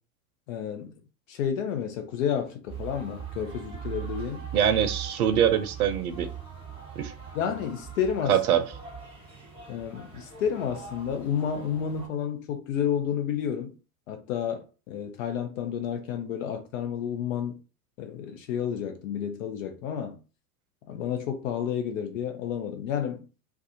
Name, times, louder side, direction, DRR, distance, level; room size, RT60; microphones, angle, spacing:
voice 1, 0.5-1.0 1.3-4.5 7.3-8.4 9.7-13.8 14.1-17.6 18.0-20.2 20.9-23.3, left 8 dB, 60° left, 0.8 m, -30 dB
sound 1, 2.7-12.1, right 8 dB, 10° right, 1.2 m, -41 dB
voice 2, 4.5-6.3 7.0-7.1 8.3-8.6, right 9 dB, 75° right, 0.6 m, -23 dB
2.4 x 2.3 x 2.7 m
hypercardioid pair, 85°, 45 cm